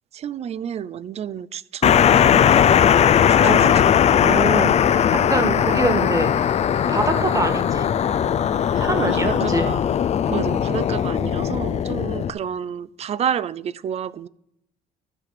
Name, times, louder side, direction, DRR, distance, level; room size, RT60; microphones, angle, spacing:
voice 1, 0.1-2.1 3.3-3.7 8.7-9.8 10.3-14.3, right 8 dB, 40° right, 19 dB, 0.4 m, -30 dB
sound 1, 1.8-12.3, left 9 dB, 40° left, 0.5 m, -18 dB
voice 2, 4.2-4.9 5.3-6.3 6.9-7.9 8.8-9.7 10.3-10.5, right 1 dB, 20° right, 8 dB, 1.5 m, -24 dB
12.5 x 5.0 x 6.8 m, 0.78 s
cardioid pair, 110°, 17 cm